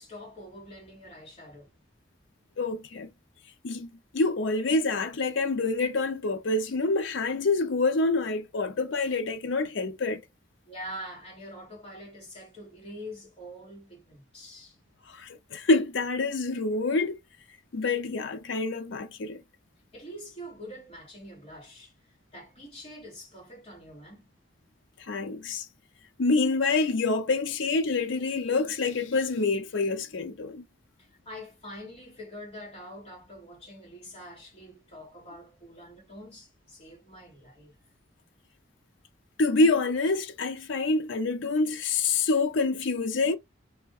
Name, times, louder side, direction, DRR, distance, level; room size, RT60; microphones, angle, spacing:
voice 1, 0.0-1.7 10.6-14.8 19.9-21.9 22.3-24.3 31.0-37.7, equal, 30° left, 2.3 m, -45 dB
voice 2, 2.6-3.1 3.6-10.2 15.1-17.2 17.7-19.4 25.1-25.7 26.2-30.6 39.4-43.4, left 3 dB, 70° left, 0.5 m, -27 dB
3.4 x 2.7 x 2.4 m
head